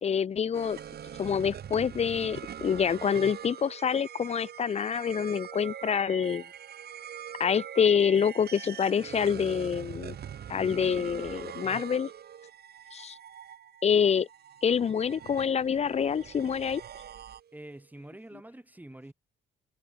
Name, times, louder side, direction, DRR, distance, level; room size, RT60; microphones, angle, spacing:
voice 1, 0.0-0.8 1.2-6.4 7.4-10.2 10.5-12.1 12.9-13.2 13.8-14.3 14.6-16.8, left 7 dB, 35° left, 0.4 m, -26 dB
sound 1, 0.5-17.8, right 9 dB, 55° right, 1.2 m, -43 dB
voice 2, 17.5-19.1, right 1 dB, 10° right, 2.2 m, -46 dB
cardioid pair, 90°, 20 cm